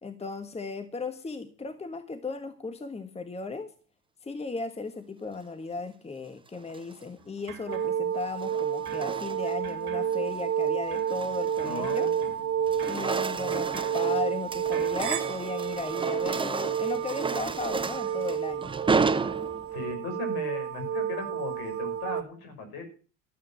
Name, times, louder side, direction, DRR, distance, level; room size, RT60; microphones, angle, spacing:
voice 1, 0.0-3.7 4.2-12.1 12.8-18.7, left 3 dB, 15° left, 9 dB, 1.4 m, -36 dB
sound 1, 6.5-7.0 8.1-9.7 10.1-10.4 10.9-12.3 12.6-19.9, right 4 dB, 10° right, 0.7 m, -33 dB
sound 2, 7.2-8.5 8.9-15.0, right 6 dB, 60° right, 2.7 m, -48 dB
sound 3, 7.7-22.2, right 8 dB, 35° right, 1.7 m, -30 dB
voice 2, 11.6-12.4 19.7-22.8, left 3 dB, 60° left, 6 dB, 5.8 m, -37 dB
13.0 x 8.6 x 7.5 m, 0.39 s
hypercardioid pair, 70°, 41 cm